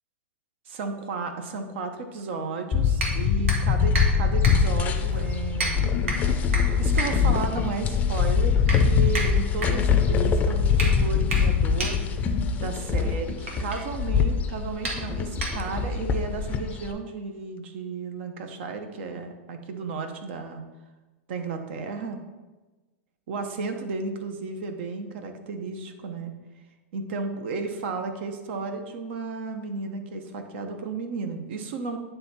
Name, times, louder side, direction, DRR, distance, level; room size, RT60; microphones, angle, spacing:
voice 1, 0.7-5.9 6.8-12.0 12.6-20.6 21.3-22.2 23.3-26.3 26.9-32.0, right 4 dB, 60° right, 6 dB, 0.9 m, -33 dB
sound 1, 2.7-16.9, left 6 dB, 25° left, 0.5 m, -23 dB
sound 2, 2.9-16.0, right 2 dB, 85° right, 1.5 m, -34 dB
9.0 x 3.4 x 4.3 m, 1.2 s
supercardioid pair, 140°, 7 cm